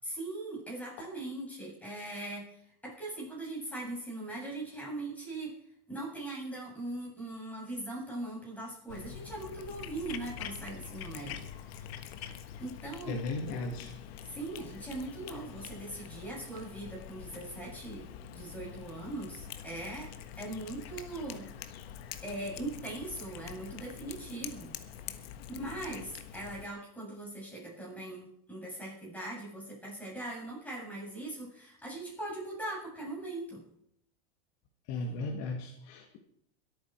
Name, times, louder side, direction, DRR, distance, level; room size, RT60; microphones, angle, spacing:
voice 1, 0.0-5.6 5.9-11.5 12.6-13.2 14.2-20.1 20.4-21.5 22.2-24.7 25.5-33.6, right 2 dB, 5° left, -3 dB, 7.8 m, -40 dB
Cat, 8.9-26.7, left 9 dB, 70° left, 1.5 m, -45 dB
voice 2, 13.1-13.9 34.9-36.2, left 2 dB, 50° left, 3 dB, 2.1 m, -36 dB
23.0 x 9.0 x 4.7 m, 0.71 s
supercardioid pair, 120°, 32 cm